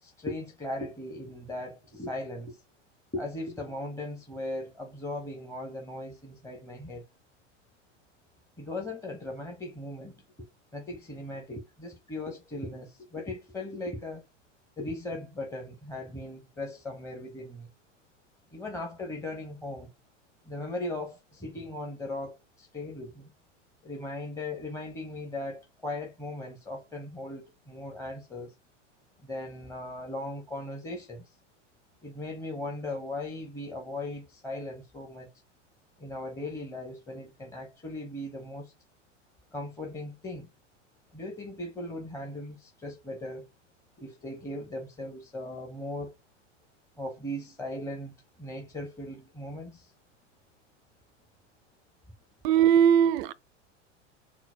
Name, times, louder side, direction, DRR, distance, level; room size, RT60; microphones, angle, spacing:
voice 1, 0.0-2.6 3.1-7.0 8.6-10.2 10.7-14.2 14.8-17.7 18.5-19.9 20.4-23.3 23.8-28.5 29.2-31.3 32.0-35.3 36.0-38.7 39.5-40.5 41.1-43.5 44.0-46.1 47.0-48.1 48.4-49.9, left 1 dB, 10° left, 1.0 m, -38 dB
voice 2, 52.4-53.3, right 9 dB, 50° right, 0.5 m, -20 dB
4.0 x 2.0 x 4.3 m
hypercardioid pair, 90°, 38 cm